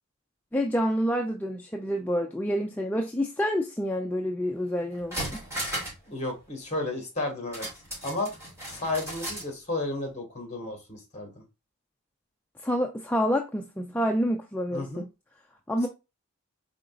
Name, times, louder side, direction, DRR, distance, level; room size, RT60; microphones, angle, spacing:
voice 1, 0.5-5.4 12.6-15.1 15.7-15.9, equal, 5° left, 0.3 m, -28 dB
sound 1, 4.5-4.6 4.9-6.1 6.3-6.4 7.5-9.5 9.8-9.9, equal, 10° right, 2.4 m, -35 dB
voice 2, 6.1-7.7 8.0-8.3 8.7-11.4 14.7-15.0, left 2 dB, 30° left, 1.6 m, -32 dB
5.0 x 3.7 x 2.4 m
head